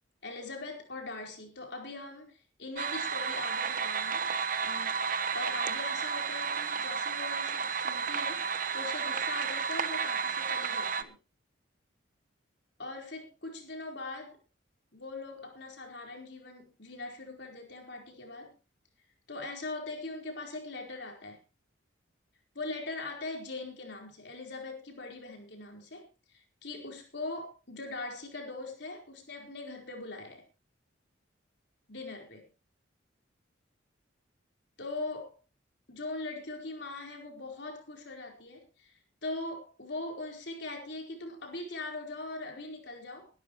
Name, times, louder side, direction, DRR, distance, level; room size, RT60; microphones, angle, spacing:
voice 1, 0.2-4.3 4.6-5.1 5.3-11.2 12.8-14.4 14.9-18.5 19.3-21.4 22.5-30.4 31.9-32.5 34.8-35.3 35.9-43.3, left 2 dB, 60° left, 2 dB, 4.5 m, -41 dB
sound 1, 2.8-11.0, right 6 dB, 45° right, 1.0 m, -32 dB
20.5 x 12.5 x 3.2 m, 0.31 s
head